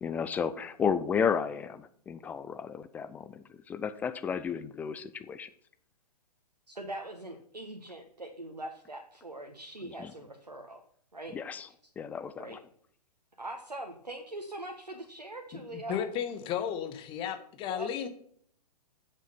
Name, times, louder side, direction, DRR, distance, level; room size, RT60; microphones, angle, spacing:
voice 1, 0.0-5.5 10.0-10.1 11.3-11.7 12.0-12.6, left 6 dB, 10° left, 12 dB, 0.3 m, -33 dB
voice 2, 6.7-10.8 11.1-11.4 12.4-12.6 13.4-16.1 17.7-17.9, right 1 dB, 85° right, 3 dB, 1.4 m, -42 dB
voice 3, 15.5-18.1, left 9 dB, 25° left, 9 dB, 1.3 m, -34 dB
9.3 x 7.5 x 5.6 m, 0.62 s
figure-of-eight pair, 115°, 20 cm